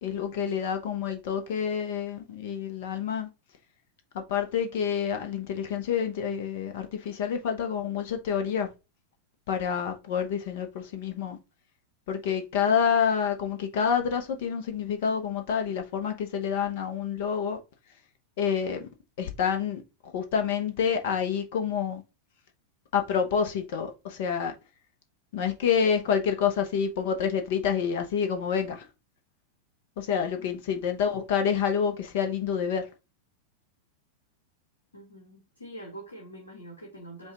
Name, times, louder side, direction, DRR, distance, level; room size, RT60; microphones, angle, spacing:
voice 1, 0.0-3.3 4.1-8.7 9.5-11.4 12.1-17.6 18.4-18.9 19.2-22.0 22.9-24.5 25.3-28.9 30.0-32.9, left 7 dB, 55° left, 0.8 m, -28 dB
voice 2, 30.2-30.6 34.9-37.3, right 1 dB, 75° left, 1.2 m, -45 dB
5.3 x 2.3 x 3.8 m
figure-of-eight pair, 90°, 0 cm